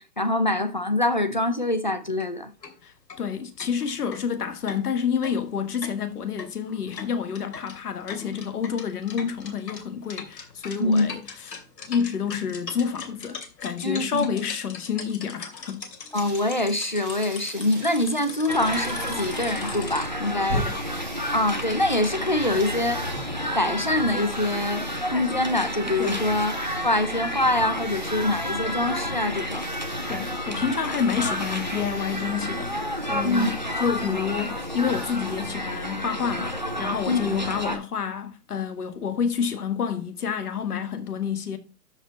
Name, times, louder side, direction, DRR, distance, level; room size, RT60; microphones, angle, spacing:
voice 1, 0.0-2.5 10.8-11.1 13.8-14.3 16.1-20.6 21.3-23.0 23.5-26.5 26.8-29.7 33.2-33.5 37.1-37.2, left 1 dB, 30° left, 0.5 m, -24 dB
sound 1, 2.1-2.3 2.6-2.7 3.1-3.2 3.6-20.1, left 5 dB, 85° left, 2.9 m, -41 dB
voice 2, 2.8-11.6 11.9-15.9 20.5-20.8 26.0-26.2 30.1-41.6, left 7 dB, 65° left, 1.8 m, -29 dB
sound 2, 16.1-35.5, right 2 dB, 10° right, 0.9 m, -42 dB
sound 3, 18.5-37.8, equal, 30° right, 0.4 m, -30 dB
12.5 x 5.2 x 4.1 m
hypercardioid pair, 175°, 49 cm